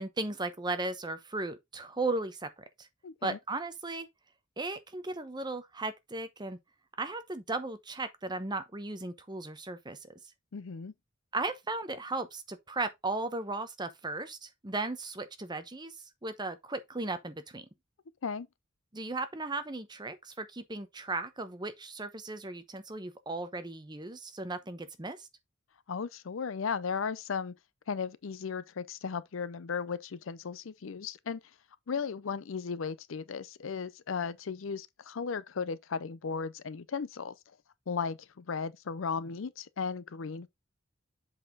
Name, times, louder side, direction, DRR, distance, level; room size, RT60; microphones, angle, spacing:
voice 1, 0.0-2.9 3.2-4.1 4.6-6.6 7.0-10.0 11.3-16.0 16.2-17.7 18.9-25.3, right 2 dB, 20° right, 0.9 m, -36 dB
voice 2, 3.0-3.4 10.5-10.9 18.2-18.5 25.9-27.5 27.9-31.4 31.9-37.3 37.9-40.5, left 5 dB, 70° left, 0.5 m, -36 dB
7.5 x 4.2 x 3.8 m
head